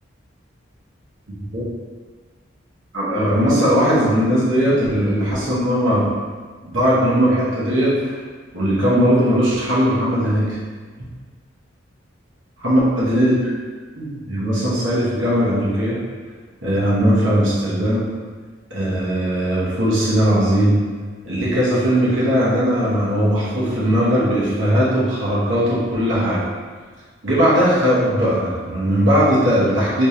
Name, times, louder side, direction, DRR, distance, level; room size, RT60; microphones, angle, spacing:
voice 1, 1.3-1.6 2.9-6.1 6.7-8.2 8.5-10.6 11.0-11.1 12.6-13.4 14.0-16.0 16.6-18.0 18.7-20.8 21.2-26.5 27.2-30.1, equal, 80° right, -8 dB, 1.1 m, -18 dB
3.2 x 2.8 x 3.2 m, 1.5 s
head